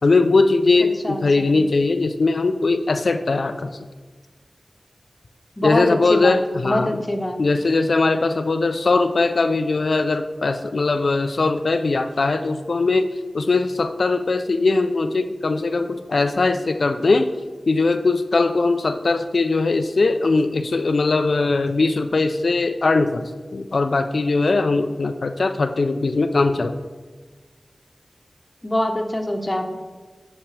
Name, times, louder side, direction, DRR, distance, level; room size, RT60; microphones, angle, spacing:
voice 1, 0.0-3.7 5.6-7.0 7.4-13.1 13.3-17.3 17.7-26.7, left 3 dB, 80° left, 7 dB, 0.4 m, -20 dB
voice 2, 1.0-1.6 5.6-6.4 6.6-7.4 28.6-29.8, left 1 dB, 25° left, 5 dB, 0.8 m, -24 dB
8.4 x 5.7 x 3.3 m, 1.4 s
wide cardioid pair, 60°, 0 cm